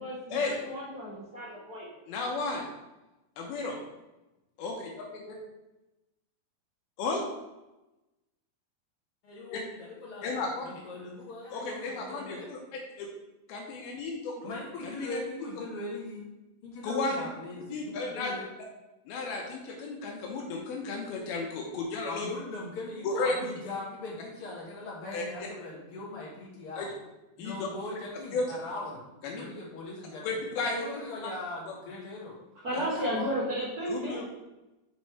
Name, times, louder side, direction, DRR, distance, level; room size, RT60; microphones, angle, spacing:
voice 1, 0.0-1.9 32.5-34.3, equal, 35° right, -7 dB, 1.5 m, -33 dB
voice 2, 2.1-2.6 3.4-3.8 4.6-5.4 7.0-7.2 9.5-9.6 10.2-10.7 11.5-12.6 13.0-13.1 13.5-14.5 14.8-15.2 16.8-17.2 17.7-18.3 19.1-22.3 23.0-23.4 25.1-25.5 26.8-26.9 27.4-27.7 28.3-28.4 29.2-29.4 30.2-31.0 33.9-34.3, left 3 dB, 85° left, 0 dB, 2.7 m, -33 dB
voice 3, 9.2-12.5 14.4-16.3 16.6-18.5 22.1-26.9 27.4-29.0 29.3-32.3 32.8-33.3, left 2 dB, 45° left, -5 dB, 2.2 m, -40 dB
6.6 x 4.2 x 4.7 m, 1.0 s
omnidirectional pair, 4.2 m